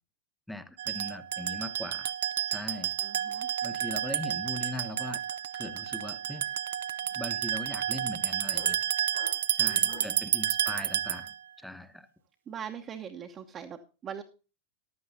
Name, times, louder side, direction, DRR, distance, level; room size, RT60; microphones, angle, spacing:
voice 1, 0.5-2.1 2.5-2.9 3.6-6.5 7.1-8.8 9.5-12.1, left 1 dB, ahead, 11 dB, 1.0 m, -40 dB
sound 1, 0.8-11.4, right 10 dB, 60° right, 0.4 m, -31 dB
voice 2, 3.0-3.5 9.6-10.3 12.5-14.2, right 8 dB, 25° right, 2 dB, 1.0 m, -42 dB
sound 2, 3.5-3.8 4.0-10.3, left 6 dB, 60° left, 4.6 m, -53 dB
15.0 x 11.5 x 2.7 m, 0.32 s
figure-of-eight pair, 90°, 0 cm